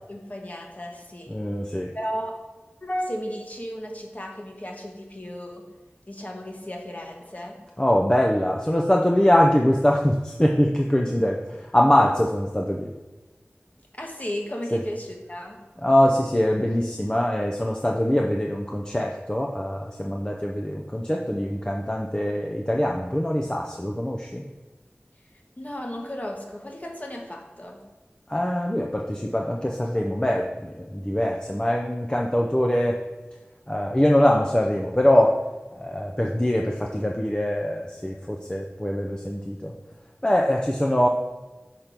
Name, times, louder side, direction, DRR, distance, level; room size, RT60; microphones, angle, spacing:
voice 1, 0.1-1.4 1.9-2.4 2.8-5.6 6.1-7.5 13.9-15.6 25.6-27.8, equal, 35° left, 1 dB, 1.2 m, -34 dB
voice 2, 1.3-1.9 7.8-12.9 14.7-14.8 15.8-24.4 28.3-33.0 33.7-35.4 35.7-39.7 40.2-41.1, left 1 dB, 20° left, 0 dB, 0.5 m, -23 dB
5.9 x 4.4 x 5.1 m, 1.2 s
wide cardioid pair, 45°, 4 cm